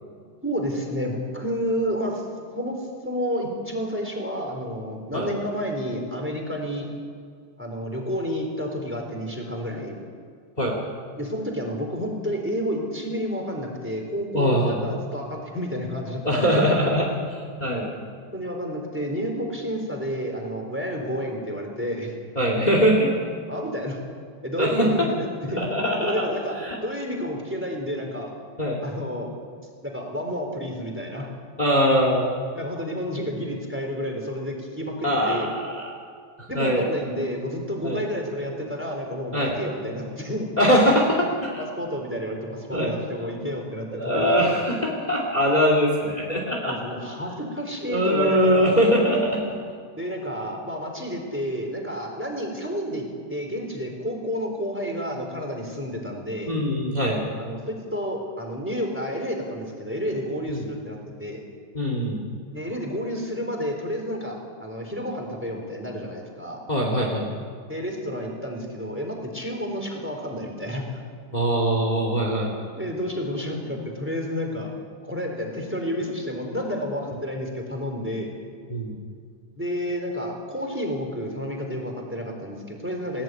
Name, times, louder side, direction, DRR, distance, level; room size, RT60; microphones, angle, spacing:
voice 1, 0.4-2.2 2.5-6.9 7.6-10.0 11.2-16.7 17.8-17.9 18.3-22.1 23.5-24.0 24.4-25.6 26.0-26.6 26.8-28.3 28.8-29.3 29.8-31.3 32.5-35.5 36.5-40.5 40.8-40.9 41.6-44.9 46.6-48.9 50.0-56.5 57.4-61.4 62.5-66.6 67.7-70.8 72.8-74.7 75.0-78.3 79.6-83.2, equal, 5° right, 2 dB, 3.1 m, -30 dB
voice 2, 14.3-14.8 16.2-17.9 22.3-23.1 24.6-25.1 25.5-26.3 26.6-26.8 28.6-28.8 31.6-32.3 35.0-35.9 36.4-36.9 37.8-38.0 39.3-39.6 40.6-41.6 42.7-42.9 43.9-46.8 47.9-49.4 56.5-57.2 60.5-60.7 61.7-62.2 66.7-67.3 71.3-72.5 78.7-79.0, equal, 15° left, 0 dB, 1.3 m, -22 dB
21.0 x 16.0 x 9.3 m, 2.1 s
omnidirectional pair, 5.5 m